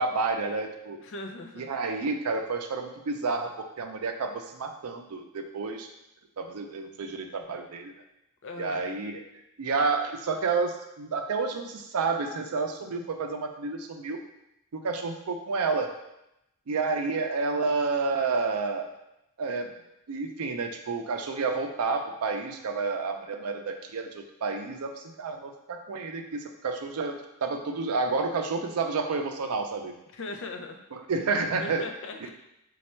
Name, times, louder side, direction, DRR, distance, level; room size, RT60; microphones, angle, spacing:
voice 1, 0.0-1.0 1.6-5.9 6.4-7.9 8.6-9.2 9.6-14.2 14.7-15.9 16.7-18.9 19.4-19.7 20.1-29.9 30.9-31.9, right 4 dB, 85° right, 5 dB, 0.5 m, -30 dB
voice 2, 1.0-1.7 8.4-8.9 30.1-30.8 31.6-32.3, left 2 dB, 60° left, 5 dB, 0.5 m, -39 dB
4.2 x 2.3 x 4.3 m, 0.85 s
head